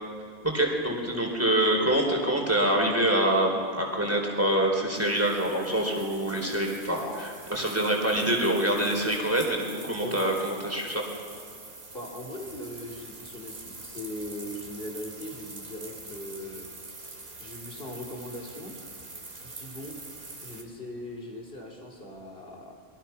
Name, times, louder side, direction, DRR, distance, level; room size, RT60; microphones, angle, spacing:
voice 1, 0.4-11.0, right 1 dB, 10° right, 0 dB, 4.2 m, -26 dB
sound 1, 4.9-20.6, right 3 dB, 50° right, 2.5 m, -45 dB
voice 2, 11.9-16.7 17.4-18.7 19.4-20.0 20.4-22.7, left 1 dB, 50° left, 0 dB, 4.1 m, -39 dB
28.0 x 22.5 x 5.9 m, 2.2 s
omnidirectional pair, 1.3 m